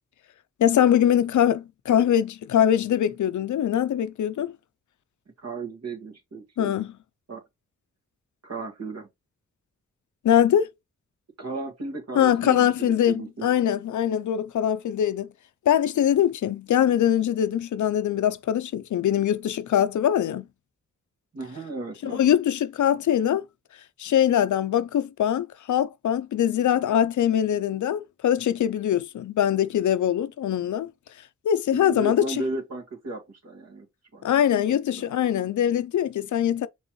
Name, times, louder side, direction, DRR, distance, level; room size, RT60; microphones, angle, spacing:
voice 1, 0.6-4.5 6.6-7.0 10.2-10.7 12.1-15.3 15.7-20.5 22.0-23.4 24.0-30.9 31.4-32.4 34.2-36.7, left 10 dB, 80° left, 0.5 m, -22 dB
voice 2, 5.4-6.9 7.3-7.4 8.4-9.1 11.4-13.5 21.3-22.2 31.7-33.9 34.1-34.6 35.0-35.1, right 2 dB, 60° right, 2.0 m, -35 dB
5.4 x 3.2 x 3.1 m
cardioid pair, 50°, 30 cm